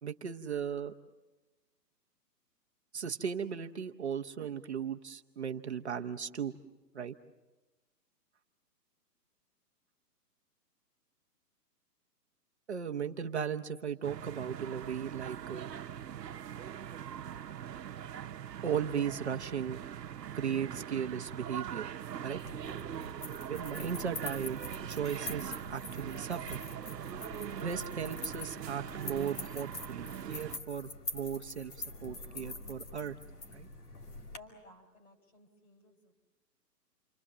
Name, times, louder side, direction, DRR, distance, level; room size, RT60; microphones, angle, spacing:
voice 1, 0.0-0.9 2.9-6.5 6.9-7.1 12.7-15.7 18.6-19.8 20.3-21.9 22.2-22.4 23.5-26.6 27.6-31.7 32.0-33.1 33.5-33.7, right 7 dB, 40° right, 5 dB, 0.8 m, -36 dB
sound 1, 14.0-30.6, right 9 dB, 75° right, 1.0 m, -42 dB
sound 2, 22.3-34.4, left 2 dB, 65° left, 2.8 m, -45 dB
voice 2, 34.3-36.1, left 2 dB, 50° left, 5 dB, 4.3 m, -57 dB
29.0 x 24.0 x 7.4 m, 1.1 s
hypercardioid pair, 180°, 49 cm